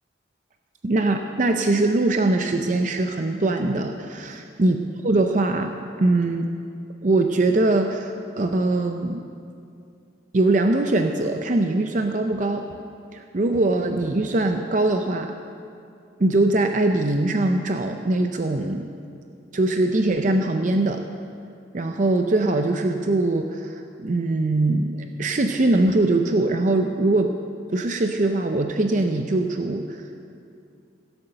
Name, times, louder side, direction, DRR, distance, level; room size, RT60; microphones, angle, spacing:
voice 1, 0.8-6.5 7.0-9.3 10.3-12.7 13.1-15.3 16.2-18.9 19.5-21.0 21.7-27.4 27.7-30.0, right 2 dB, 40° right, 5 dB, 0.5 m, -22 dB
16.0 x 8.8 x 6.7 m, 2.5 s
head